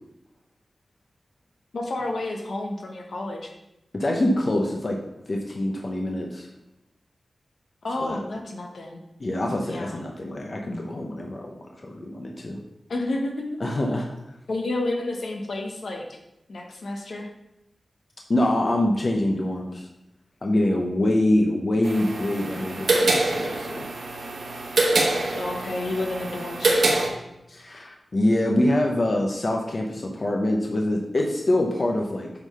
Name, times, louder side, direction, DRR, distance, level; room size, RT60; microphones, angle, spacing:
voice 1, 1.7-3.5 7.8-9.0 9.7-10.0 12.9-13.6 14.5-16.0 16.5-17.3 25.4-27.1, left 2 dB, 70° left, 2 dB, 1.2 m, -30 dB
voice 2, 3.9-5.0 5.3-6.5 8.0-8.2 9.2-11.6 11.8-12.6 13.6-14.1 18.3-19.9 20.4-23.9 24.9-25.1 27.5-32.3, left 1 dB, 45° left, 1 dB, 0.9 m, -25 dB
sound 1, 21.8-27.1, right 2 dB, 80° right, 1.4 m, -25 dB
7.9 x 4.0 x 5.5 m, 0.90 s
wide cardioid pair, 100°, 0 cm